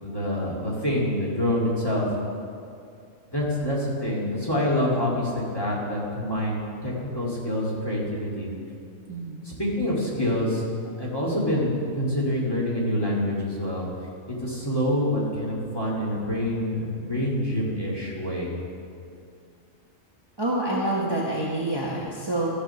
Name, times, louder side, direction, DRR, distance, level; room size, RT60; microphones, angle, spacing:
voice 1, 0.0-2.1 3.3-8.5 9.4-13.9 14.3-18.5, left 1 dB, 20° left, -6 dB, 2.1 m, -26 dB
voice 2, 9.1-9.4 20.4-22.5, right 1 dB, 20° right, -5 dB, 1.1 m, -27 dB
13.0 x 4.9 x 6.9 m, 2.4 s
omnidirectional pair, 1.4 m